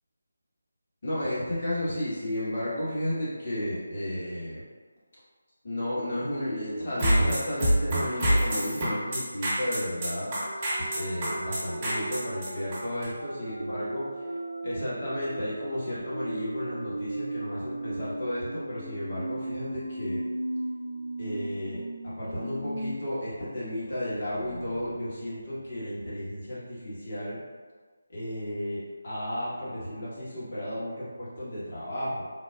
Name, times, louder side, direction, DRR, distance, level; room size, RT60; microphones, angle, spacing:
voice 1, 1.0-4.6 5.6-10.3 10.9-14.1 14.6-20.2 21.2-27.4 28.1-32.3, left 1 dB, 45° left, -9 dB, 1.3 m, -33 dB
sound 1, 6.9-13.0, right 1 dB, 25° right, 1.1 m, -26 dB
sound 2, 10.4-22.9 23.3-23.4 23.7-26.4, right 1 dB, 55° right, 0.4 m, -37 dB
4.0 x 2.3 x 2.3 m, 1.4 s
figure-of-eight pair, 155°, 0 cm